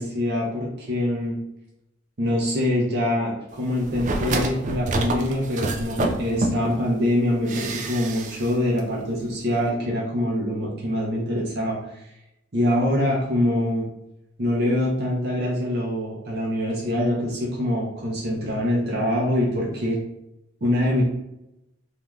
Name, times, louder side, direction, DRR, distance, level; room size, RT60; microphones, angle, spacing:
voice 1, 0.0-1.4 2.2-12.1 12.5-13.8 14.4-20.0 20.6-21.0, left 1 dB, 55° right, -4 dB, 0.7 m, -24 dB
sound 1, 3.8-6.8 7.5-8.5 8.8-8.9, right 2 dB, 40° right, 0.3 m, -27 dB
2.6 x 2.3 x 3.1 m, 0.86 s
head